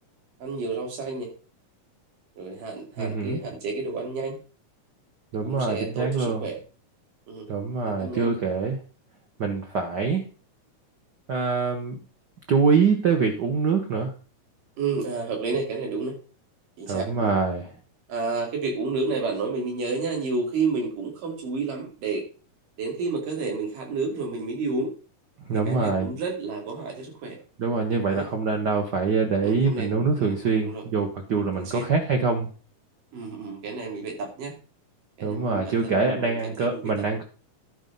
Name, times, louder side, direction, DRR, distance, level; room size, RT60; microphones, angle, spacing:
voice 1, 0.4-1.3 2.4-4.4 5.4-6.6 7.3-7.5 7.9-8.4 14.8-16.2 16.8-17.3 18.1-22.2 22.8-24.9 25.7-27.4 28.1-28.2 29.4-30.8 31.6-31.9 33.1-34.6 35.2-36.8, right 4 dB, 80° right, 1 dB, 4.5 m, -30 dB
voice 2, 3.0-3.4 5.3-6.4 7.5-8.8 9.4-10.2 11.3-12.0 12.5-14.1 16.9-17.6 25.5-26.1 27.6-32.5 35.2-37.2, right 4 dB, 60° right, 4 dB, 1.1 m, -24 dB
11.5 x 5.0 x 5.4 m, 0.37 s
omnidirectional pair, 3.8 m